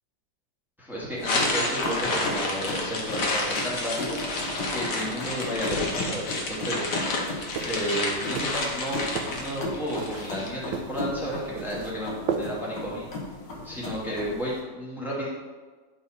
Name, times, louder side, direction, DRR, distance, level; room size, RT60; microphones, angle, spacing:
voice 1, 0.8-4.2 4.7-6.9 7.6-9.0 9.3-13.1 13.6-15.3, equal, ahead, -7 dB, 1.7 m, -32 dB
sound 1, 1.2-14.6, left 2 dB, 70° left, 1.9 m, -37 dB
sound 2, 1.2-10.5, left 2 dB, 50° left, 1.4 m, -30 dB
sound 3, 7.5-12.9, right 6 dB, 75° right, 1.3 m, -36 dB
10.0 x 3.7 x 4.1 m, 1.4 s
omnidirectional pair, 2.0 m